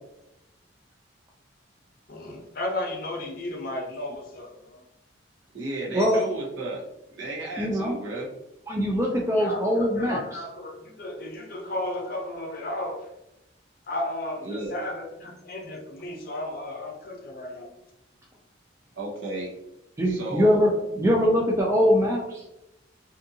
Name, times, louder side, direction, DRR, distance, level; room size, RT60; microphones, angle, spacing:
voice 1, 2.1-4.8 9.4-13.1 13.9-17.7, left 1 dB, 50° left, 0 dB, 0.6 m, -34 dB
voice 2, 5.5-6.8 7.1-8.3 14.4-14.7 19.0-19.5 20.0-20.5, right 2 dB, 70° right, -2 dB, 0.8 m, -33 dB
voice 3, 7.6-7.9 8.7-10.2 20.0-22.4, equal, 15° right, -2 dB, 0.3 m, -22 dB
2.6 x 2.4 x 2.6 m, 0.89 s
head